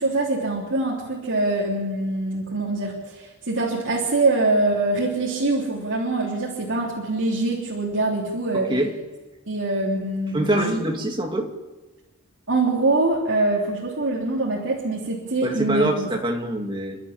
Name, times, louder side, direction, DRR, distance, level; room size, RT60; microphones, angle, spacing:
voice 1, 0.0-8.7 9.5-10.8 12.5-16.1, right 2 dB, 60° right, -4 dB, 3.3 m, -24 dB
voice 2, 10.3-11.5 15.4-17.0, right 1 dB, 20° right, 2 dB, 2.3 m, -24 dB
29.5 x 11.5 x 8.6 m, 1.2 s
head